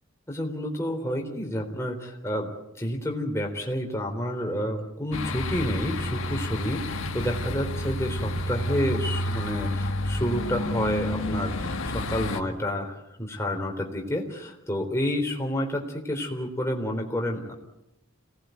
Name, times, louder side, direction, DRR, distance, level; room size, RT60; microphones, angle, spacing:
voice 1, 0.3-17.5, equal, 15° left, 1 dB, 4.0 m, -29 dB
sound 1, 5.1-12.4, left 1 dB, 80° left, 2.0 m, -30 dB
27.0 x 19.0 x 9.4 m, 0.84 s
head